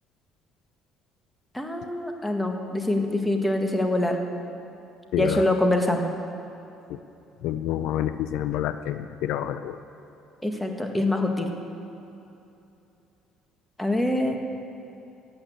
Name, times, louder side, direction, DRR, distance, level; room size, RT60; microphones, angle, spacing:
voice 1, 1.5-4.2 5.2-6.1 10.4-11.5 13.8-14.4, left 1 dB, 5° left, 3 dB, 1.7 m, -24 dB
voice 2, 5.1-5.4 6.9-7.0 7.4-9.8, left 11 dB, 75° left, 11 dB, 0.5 m, -28 dB
14.5 x 8.8 x 9.1 m, 2.8 s
cardioid pair, 100°, 0 cm